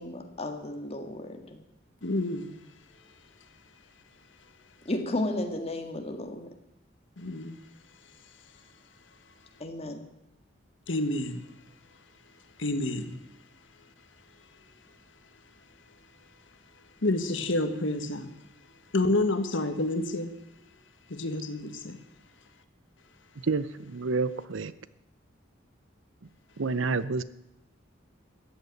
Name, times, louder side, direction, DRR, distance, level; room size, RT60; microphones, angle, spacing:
voice 1, 0.0-1.6 4.8-6.5 9.6-10.0, left 1 dB, 30° left, 5 dB, 1.8 m, -33 dB
voice 2, 2.0-2.5 7.2-7.6 10.9-11.5 12.6-13.2 17.0-18.3 18.9-20.3 21.1-22.0, left 2 dB, 70° left, 9 dB, 1.5 m, -29 dB
voice 3, 23.4-24.7 26.6-27.2, right 4 dB, 80° right, 16 dB, 0.7 m, -29 dB
14.5 x 8.2 x 9.2 m, 0.89 s
head